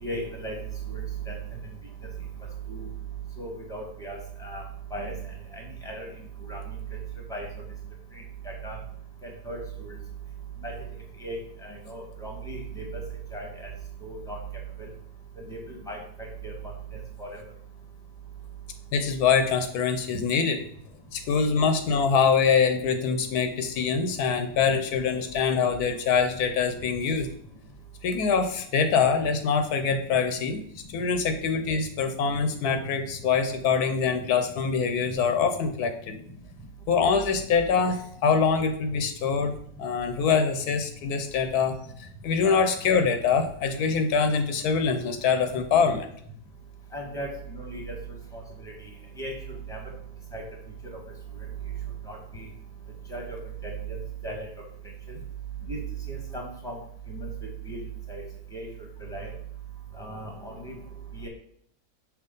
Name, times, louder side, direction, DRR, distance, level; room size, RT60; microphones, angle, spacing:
voice 1, 0.0-0.6 0.9-1.3 2.7-2.9 3.4-4.6 4.9-5.1 5.5-6.1 6.5-6.6 7.3-7.5 8.4-8.8 9.2-10.0 10.6-10.7 11.2-12.9 13.3-13.5 14.0-14.4 15.5-16.0 16.4-16.5 17.2-17.4 46.9-47.9 48.3-48.4 49.2-49.3 49.7-49.8 50.3-50.4 52.1-52.5 53.1-53.2 53.6-54.0 54.2-54.5 55.7-55.8 56.1-56.7 57.1-57.3 57.7-57.8 58.1-58.2 58.5-58.7 59.0-59.3 60.0-60.7 61.2-61.3, right 2 dB, ahead, -1 dB, 1.5 m, -36 dB
voice 2, 18.9-20.6 21.1-27.3 28.0-30.6 30.9-36.1 36.9-39.5 39.8-46.1, left 5 dB, 90° left, 7 dB, 1.3 m, -24 dB
5.9 x 3.1 x 5.3 m, 0.65 s
omnidirectional pair, 1.6 m